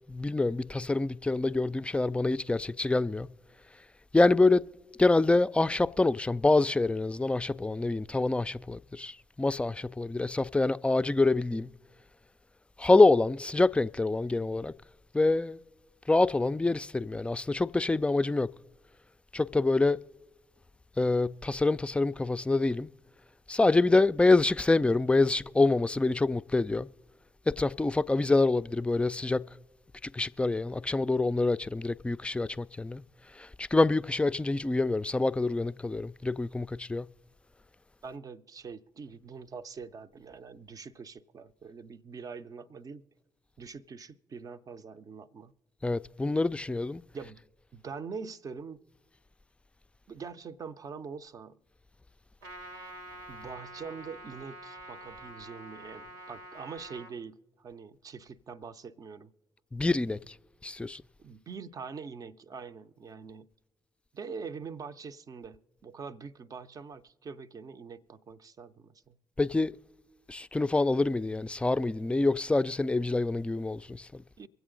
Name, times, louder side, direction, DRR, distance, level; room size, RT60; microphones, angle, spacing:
voice 1, 0.1-3.3 4.1-4.6 5.0-11.7 12.8-14.7 15.1-15.6 16.1-18.5 19.3-20.0 21.0-22.9 23.5-26.9 27.5-29.4 30.1-33.0 33.4-37.1 45.8-47.0 59.7-60.3 60.6-61.0 69.4-69.7 70.3-74.2, left 3 dB, 15° left, 0.4 m, -26 dB
voice 2, 38.0-43.0 43.6-45.5 47.1-47.4 47.7-48.8 50.1-51.6 53.3-59.3 61.2-63.5 64.1-69.2 74.4-74.5, right 5 dB, 45° right, 0.6 m, -44 dB
Trumpet, 52.4-57.1, right 1 dB, 85° right, 1.0 m, -46 dB
23.5 x 8.0 x 3.8 m
hypercardioid pair, 40°, 8 cm